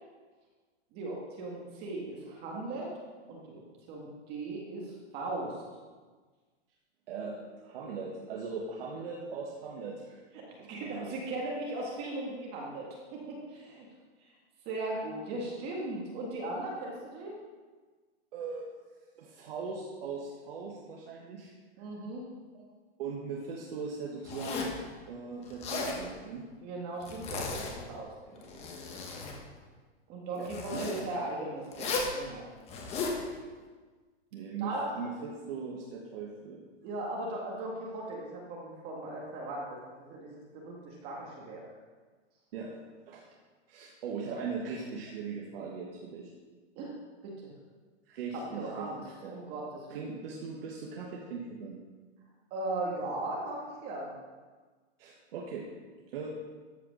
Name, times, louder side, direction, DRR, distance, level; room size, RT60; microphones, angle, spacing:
voice 1, 0.9-2.9 3.3-3.6 3.9-5.6 10.3-13.9 14.7-17.3 21.8-22.2 26.6-28.5 30.1-32.5 34.6-34.9 36.8-39.8 40.1-41.6 46.8-46.9 47.2-47.5 48.3-49.0 49.3-50.1 52.5-54.1, right 2 dB, 30° right, -3 dB, 1.8 m, -38 dB
voice 2, 7.1-10.2 10.6-11.1 18.3-18.7 19.2-21.5 22.5-22.7 23.0-26.4 30.4-31.0 34.3-36.6 42.5-42.8 43.1-43.3 43.7-46.3 48.1-49.4 49.9-51.8 55.0-55.7 56.1-56.3, right 5 dB, 55° right, -2 dB, 1.6 m, -40 dB
Zipper (clothing), 24.2-24.8 25.5-26.0 27.0-27.9 28.4-29.4 30.4-31.0 31.7-32.1 32.7-33.2, left 4 dB, 20° left, 1.3 m, -35 dB
13.5 x 4.8 x 6.3 m, 1.4 s
hypercardioid pair, 160°, 34 cm